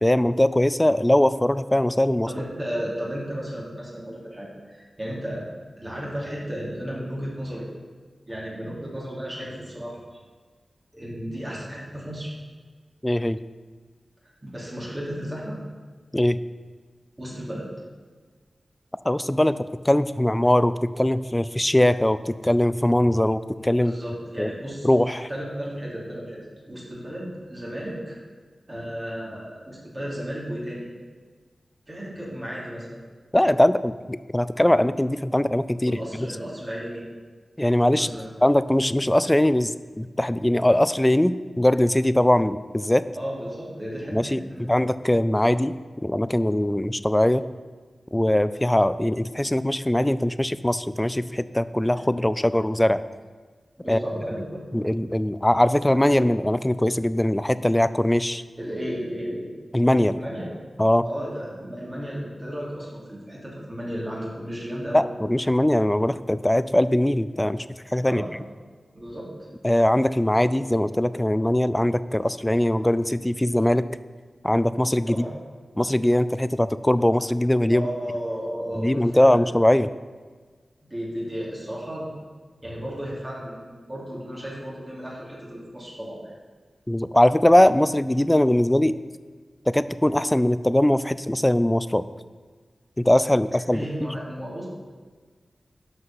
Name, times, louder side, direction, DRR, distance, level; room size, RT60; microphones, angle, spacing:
voice 1, 0.0-2.3 13.0-13.4 16.1-16.4 19.1-19.6 19.9-23.9 24.4-24.5 24.8-25.3 33.3-36.0 37.6-38.1 38.4-43.0 44.1-45.7 46.0-47.4 48.1-53.0 53.9-54.0 54.7-58.4 59.7-60.2 60.8-61.1 64.9-67.6 67.9-68.2 69.6-73.8 74.4-75.2 75.8-77.9 78.8-79.9 86.9-89.0 89.7-92.0 93.0-93.9, left 1 dB, 10° left, 14 dB, 0.4 m, -21 dB
voice 2, 2.3-5.5 5.8-7.7 8.3-10.2 10.9-12.3 14.4-15.6 17.2-17.7 23.8-24.9 25.3-26.4 26.7-28.2 28.7-30.9 31.9-33.0 35.8-37.0 37.9-38.3 43.1-44.7 53.8-54.7 58.6-59.5 60.1-60.5 61.0-65.0 68.1-68.3 68.9-69.3 75.1-75.3 77.7-79.4 80.9-82.1 82.6-86.3 93.7-94.7, equal, 25° right, -6 dB, 2.9 m, -34 dB
12.0 x 5.5 x 5.6 m, 1.5 s
wide cardioid pair, 90°, 0 cm